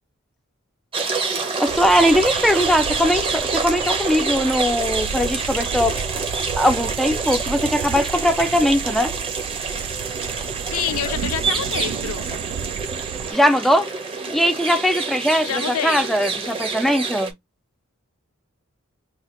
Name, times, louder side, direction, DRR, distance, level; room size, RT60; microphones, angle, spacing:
sound 1, 0.9-17.3, right 4 dB, 25° right, 0.8 m, -27 dB
voice 1, 1.6-6.0 6.6-9.1 13.3-13.9 14.3-17.3, equal, ahead, 0.3 m, -20 dB
sound 2, 1.7-13.3, right 8 dB, 90° right, 0.3 m, -32 dB
voice 2, 10.7-12.3 15.4-16.0, left 9 dB, 90° left, 0.5 m, -27 dB
2.8 x 2.4 x 3.7 m
head